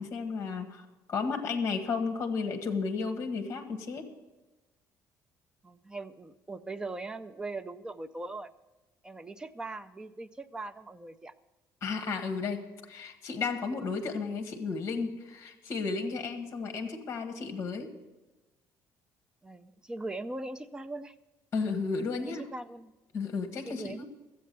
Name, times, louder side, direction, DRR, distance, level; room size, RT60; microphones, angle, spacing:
voice 1, 0.0-4.1 11.8-17.9 21.5-22.4 23.1-24.0, left 4 dB, 40° left, 6 dB, 1.4 m, -33 dB
voice 2, 5.6-8.5 9.0-11.3 19.4-21.2 22.2-22.9 23.7-24.0, right 2 dB, 10° right, 11 dB, 0.5 m, -40 dB
13.0 x 8.5 x 6.7 m, 1.1 s
cardioid pair, 145°, 7 cm